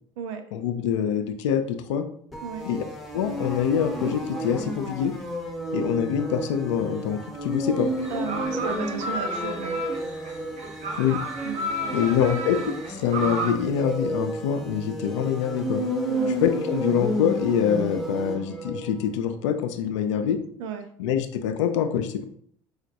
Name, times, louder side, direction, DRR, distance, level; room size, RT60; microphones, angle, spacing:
voice 1, 0.5-2.0 2.7-2.8 3.1-5.1 5.7-7.9 11.0-11.2 11.9-12.6 12.9-15.8 16.4-20.4 21.0-22.2, left 8 dB, 75° left, 7 dB, 0.4 m, -25 dB
sound 1, 2.3-18.9, right 1 dB, ahead, 0.8 m, -32 dB
sound 2, 7.8-13.5, right 1 dB, 45° right, 0.9 m, -32 dB
voice 2, 8.1-9.8 11.4-12.3 16.1-16.4 20.6-20.9, right 7 dB, 70° right, 7 dB, 0.4 m, -35 dB
4.8 x 2.1 x 2.7 m, 0.64 s
hypercardioid pair, 65°, 16 cm